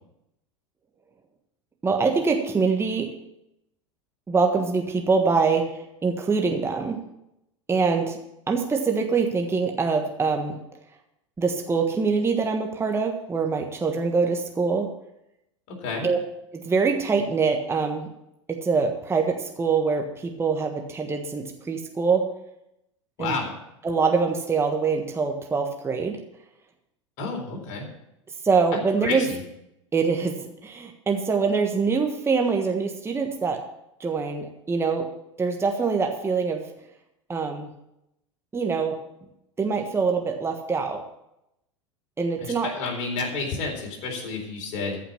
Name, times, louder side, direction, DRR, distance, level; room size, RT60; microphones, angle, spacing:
voice 1, 1.8-3.1 4.3-5.7 6.0-7.0 7.7-8.2 8.5-10.6 11.4-14.9 16.0-16.2 16.5-18.1 18.5-22.3 23.2-23.4 23.8-26.2 28.4-29.2 29.9-30.4 30.6-33.6 34.0-35.1 35.4-36.6 37.3-37.7 38.5-39.0 39.6-41.0 42.2-42.7, right 4 dB, 15° right, 3 dB, 1.4 m, -24 dB
voice 2, 15.7-16.1 23.2-23.5 27.2-27.8 29.0-29.4 42.4-45.0, left 4 dB, 55° left, 1 dB, 4.0 m, -30 dB
14.0 x 5.9 x 7.3 m, 0.84 s
hypercardioid pair, 85°, 16 cm